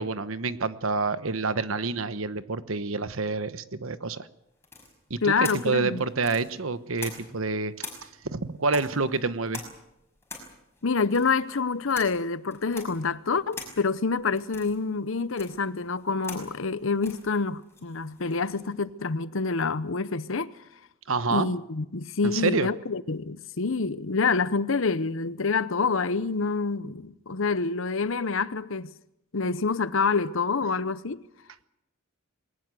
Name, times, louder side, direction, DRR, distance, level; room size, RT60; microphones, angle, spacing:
voice 1, 0.0-4.3 5.1-7.8 8.2-9.6 21.1-21.5 22.2-22.7, right 3 dB, 70° right, 1.2 m, -28 dB
sound 1, 4.6-7.5 7.8-18.7, left 3 dB, 10° left, 5.6 m, -44 dB
voice 2, 5.2-6.0 10.8-20.5 21.3-28.9 29.3-31.2, left 4 dB, 65° left, 0.9 m, -27 dB
21.5 x 19.5 x 7.7 m
head